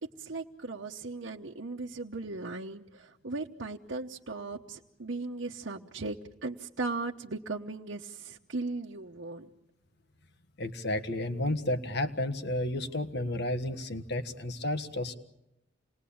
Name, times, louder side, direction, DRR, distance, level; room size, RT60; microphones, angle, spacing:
voice 1, 0.0-9.5, right 3 dB, 65° right, 0 dB, 1.0 m, -37 dB
voice 2, 10.6-15.2, left 1 dB, 60° left, 9 dB, 1.6 m, -32 dB
28.0 x 20.5 x 8.7 m, 0.87 s
head